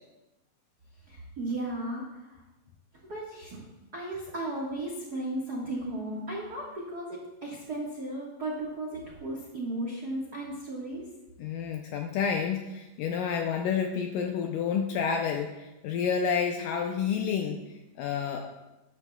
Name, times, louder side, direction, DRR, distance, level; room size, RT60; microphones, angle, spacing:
voice 1, 1.1-2.4 3.1-3.6 3.9-11.1, right 1 dB, 70° right, -3 dB, 0.9 m, -35 dB
voice 2, 11.4-17.6 18.0-18.5, left 7 dB, 80° left, 4 dB, 1.9 m, -29 dB
13.0 x 11.0 x 2.3 m, 1.0 s
omnidirectional pair, 4.4 m